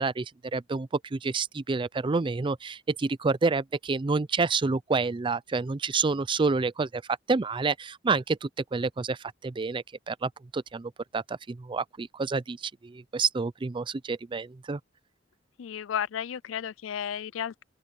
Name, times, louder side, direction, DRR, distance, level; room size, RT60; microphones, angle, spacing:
voice 1, 0.0-7.0 7.3-14.8, right 4 dB, 25° right, 0.4 m, -29 dB
voice 2, 15.6-17.6, left 9 dB, 85° left, 0.4 m, -33 dB
open air
head